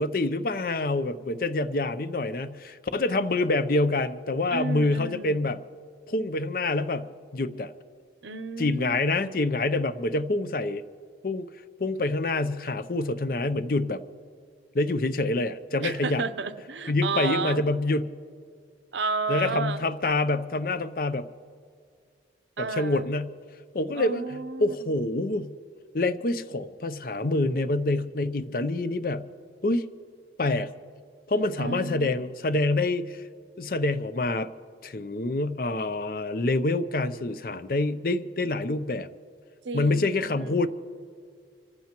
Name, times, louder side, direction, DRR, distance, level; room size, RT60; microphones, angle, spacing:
voice 1, 0.0-5.6 6.1-7.1 7.3-7.7 8.6-10.8 11.2-11.5 11.8-14.0 14.7-16.2 16.9-18.1 19.3-21.3 22.6-23.3 23.7-25.5 25.9-29.3 29.6-29.8 30.4-30.7 31.3-33.2 33.6-34.5 34.8-39.1 39.7-40.7, left 2 dB, 50° left, 12 dB, 0.6 m, -26 dB
voice 2, 4.5-5.5 8.2-9.0 15.8-17.6 18.9-19.8 22.6-23.1 23.9-24.9 31.6-32.2 39.6-40.6, right 4 dB, 80° right, 11 dB, 0.7 m, -32 dB
26.5 x 15.0 x 3.0 m, 2.3 s
head